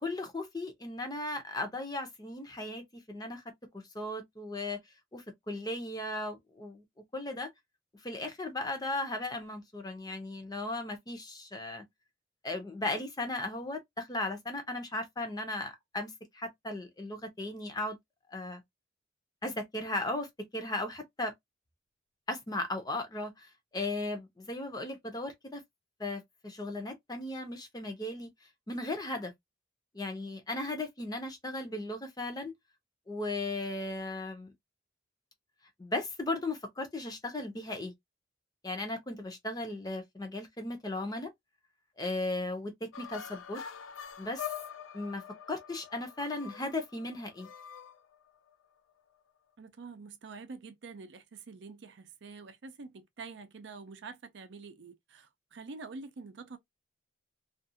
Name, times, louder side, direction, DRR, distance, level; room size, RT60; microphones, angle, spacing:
voice 1, 0.0-3.4 3.9-4.8 5.1-6.8 7.1-7.5 8.0-11.8 12.4-18.0 18.3-18.6 19.4-20.3 20.5-21.3 22.3-25.6 26.0-28.3 28.7-29.3 29.9-32.5 33.1-34.5 35.8-37.9 38.6-41.3 42.0-43.6 44.2-44.5 44.9-45.2 45.5-47.5, left 2 dB, 20° left, 0.6 m, -36 dB
sound 1, 42.9-48.5, left 8 dB, 80° left, 0.5 m, -45 dB
voice 2, 49.6-56.6, right 4 dB, 60° right, 0.5 m, -47 dB
2.5 x 2.3 x 2.7 m
head